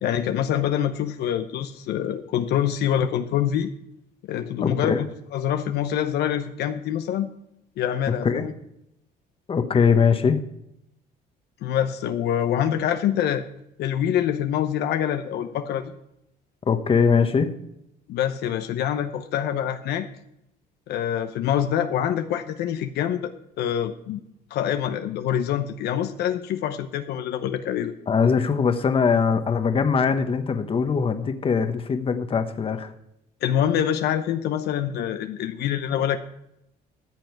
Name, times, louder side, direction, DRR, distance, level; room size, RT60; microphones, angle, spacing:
voice 1, 0.0-3.7 4.3-4.9 5.3-7.3 7.8-8.5 11.6-13.4 13.8-15.9 18.1-20.1 20.9-24.2 24.5-27.9 33.4-36.2, left 10 dB, 75° left, 8 dB, 0.8 m, -25 dB
voice 2, 4.6-5.1 8.2-8.5 9.5-10.4 16.7-17.5 28.1-32.9, left 6 dB, 35° left, 8 dB, 1.2 m, -21 dB
13.5 x 7.8 x 4.7 m, 0.81 s
cardioid pair, 110°, 17 cm